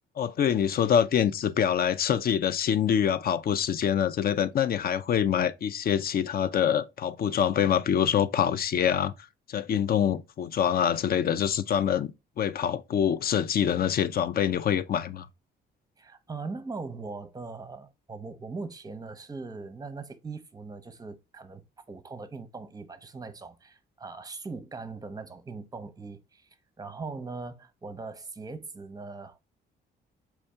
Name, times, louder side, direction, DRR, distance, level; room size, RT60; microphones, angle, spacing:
voice 1, 0.2-9.1 9.5-12.1 12.4-15.3, left 9 dB, 50° left, 0.5 m, -25 dB
voice 2, 16.0-21.6 21.9-26.5 26.8-29.4, right 4 dB, 20° right, 0.7 m, -40 dB
4.5 x 2.7 x 3.3 m
cardioid pair, 90°, 20 cm